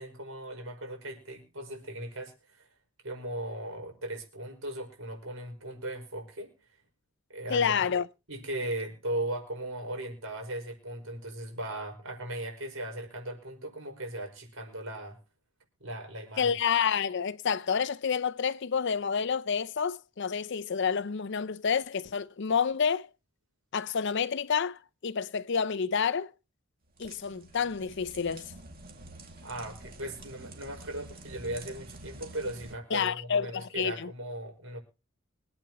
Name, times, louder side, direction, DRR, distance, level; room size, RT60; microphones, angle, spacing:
voice 1, 0.0-2.7 3.0-6.5 7.3-7.9 8.3-15.2 15.8-16.5 29.4-34.8, right 1 dB, 75° right, 5.3 m, -38 dB
voice 2, 7.5-8.1 16.4-23.1 23.7-26.3 27.0-28.5 32.9-34.1, left 6 dB, 55° left, 0.6 m, -29 dB
sound 1, 26.9-32.8, right 2 dB, 45° right, 2.2 m, -48 dB
25.0 x 8.9 x 3.0 m
head